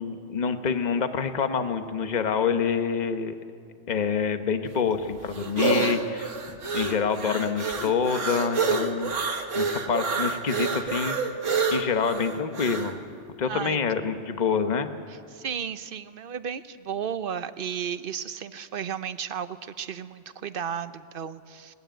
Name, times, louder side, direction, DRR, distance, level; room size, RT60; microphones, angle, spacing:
voice 1, 0.0-3.3 3.9-9.1 9.5-11.2 11.7-13.0 13.4-14.9, left 6 dB, 40° left, 8 dB, 1.1 m, -27 dB
sound 1, 4.7-12.9, right 4 dB, 90° right, 1.8 m, -28 dB
voice 2, 13.4-13.8 15.1-21.7, right 7 dB, 55° right, 13 dB, 0.8 m, -34 dB
20.5 x 19.0 x 9.1 m, 2.3 s
omnidirectional pair, 1.3 m